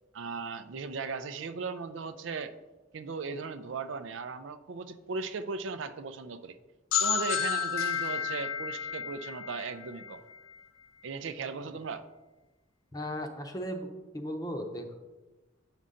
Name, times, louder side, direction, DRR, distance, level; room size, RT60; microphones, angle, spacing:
voice 1, 0.1-2.5 2.9-6.6 7.0-10.2 11.0-12.1, right 4 dB, 70° right, 11 dB, 0.4 m, -37 dB
sound 1, 6.9-10.6, left 8 dB, 85° left, 0.5 m, -31 dB
voice 2, 12.9-13.9 14.1-15.0, equal, 20° left, 5 dB, 0.7 m, -36 dB
8.5 x 5.4 x 3.8 m, 1.2 s
head